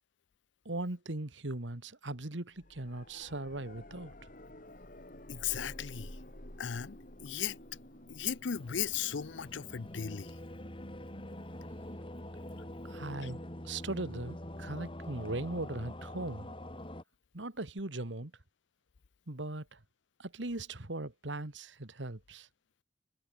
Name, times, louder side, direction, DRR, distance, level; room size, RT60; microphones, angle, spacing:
voice 1, 0.7-4.1 12.8-16.5 17.3-18.3 19.3-19.8 20.2-22.5, right 2 dB, 80° right, 2.0 m, -39 dB
sound 1, 2.6-15.4 17.8-17.9, left 1 dB, 45° left, 4.1 m, -53 dB
voice 2, 5.3-6.2 6.6-7.6 8.1-10.3 13.2-13.3, left 8 dB, 80° left, 0.6 m, -36 dB
sound 2, 8.5-17.0, left 1 dB, 30° left, 3.6 m, -45 dB
head